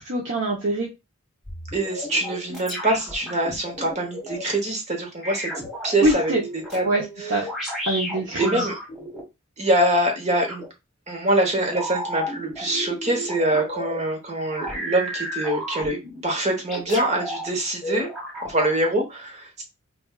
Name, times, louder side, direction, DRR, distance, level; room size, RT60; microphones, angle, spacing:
voice 1, 0.1-0.9 6.0-6.4 6.8-7.0 7.3-7.5 7.9-8.7, right 1 dB, 60° right, -3 dB, 0.9 m, -23 dB
sound 1, 1.5-4.4 5.2-9.2 10.5-10.7 11.7-14.0 14.5-16.2 16.7-17.5 17.8-18.7, equal, ahead, 1.6 m, -32 dB
voice 2, 1.7-5.5 5.8-6.8 8.4-8.8 9.6-10.6 11.1-18.1 18.4-19.6, right 1 dB, 30° right, 2 dB, 1.2 m, -24 dB
5.6 x 2.6 x 2.4 m, 0.24 s
head